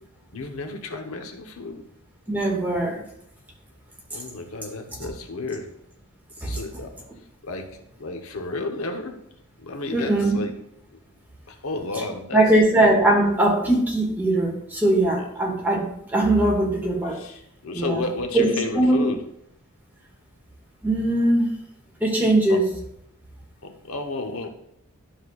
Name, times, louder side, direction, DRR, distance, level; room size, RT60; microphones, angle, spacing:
voice 1, 0.3-1.9 4.1-5.7 6.5-7.0 7.4-9.2 9.6-10.5 11.5-12.4 15.2-15.3 17.1-19.2 22.5-22.6 23.6-24.5, left 2 dB, 80° left, 5 dB, 0.9 m, -32 dB
voice 2, 2.3-3.0 6.4-6.5 9.9-10.4 12.3-17.2 17.7-18.0 18.3-19.1 20.8-21.5 22.0-22.6, right 1 dB, 10° right, -2 dB, 1.9 m, -20 dB
11.5 x 6.4 x 2.4 m, 0.73 s
head